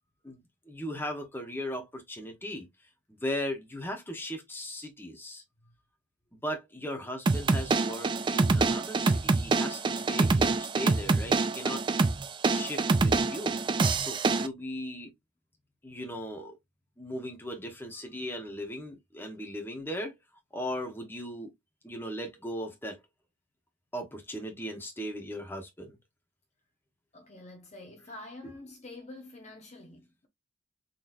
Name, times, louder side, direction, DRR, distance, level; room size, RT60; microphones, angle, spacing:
voice 1, 0.7-2.7 3.1-5.4 6.3-11.8 12.5-13.6 13.9-15.1 15.8-16.6 17.0-20.2 20.5-21.5 21.8-23.0 23.9-26.0, equal, 10° left, 1.1 m, -37 dB
sound 1, 7.3-14.5, right 3 dB, 25° right, 0.3 m, -26 dB
voice 2, 27.1-30.3, left 2 dB, 35° left, 0.9 m, -47 dB
4.0 x 3.1 x 2.6 m
head